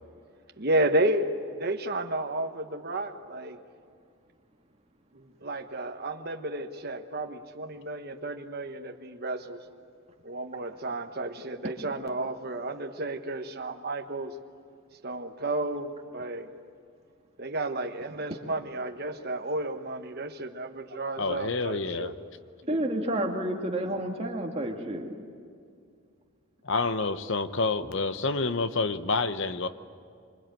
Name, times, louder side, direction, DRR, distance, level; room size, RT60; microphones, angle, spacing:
voice 1, 0.6-3.6 5.1-9.6 10.2-14.3 15.0-16.5 17.4-22.2, right 1 dB, 45° right, 5 dB, 1.2 m, -32 dB
voice 2, 21.2-22.1 26.6-29.7, left 3 dB, 60° left, 11 dB, 0.9 m, -28 dB
voice 3, 22.7-25.2, right 1 dB, 30° right, 1 dB, 2.3 m, -30 dB
25.5 x 25.5 x 9.2 m, 2.3 s
head